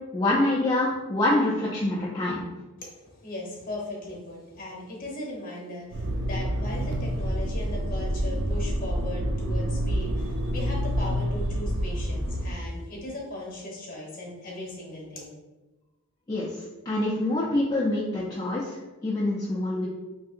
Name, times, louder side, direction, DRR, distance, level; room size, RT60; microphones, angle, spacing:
voice 1, 0.1-2.4 16.3-19.9, left 1 dB, 20° left, -7 dB, 0.4 m, -26 dB
voice 2, 2.8-15.3, left 1 dB, 40° left, -2 dB, 0.9 m, -38 dB
Motor vehicle (road), 5.9-12.5, equal, 50° right, 0.4 m, -28 dB
3.4 x 2.7 x 2.4 m, 1.1 s
head